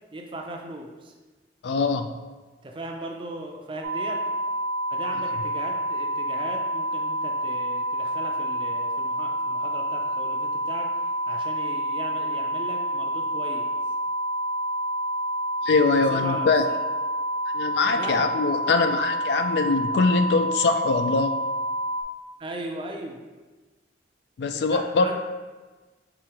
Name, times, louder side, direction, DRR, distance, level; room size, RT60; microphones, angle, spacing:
voice 1, 0.1-1.1 2.6-4.3 4.9-10.9 11.3-13.7 16.1-16.8 17.8-18.3 22.4-23.2 24.5-25.2, right 2 dB, 30° right, 2 dB, 0.4 m, -38 dB
voice 2, 1.6-2.1 15.6-16.6 17.5-21.3 24.4-25.1, left 4 dB, 65° left, 7 dB, 0.3 m, -22 dB
sound 1, 3.8-22.0, right 1 dB, 90° right, 0.7 m, -28 dB
4.8 x 3.7 x 2.9 m, 1.3 s
head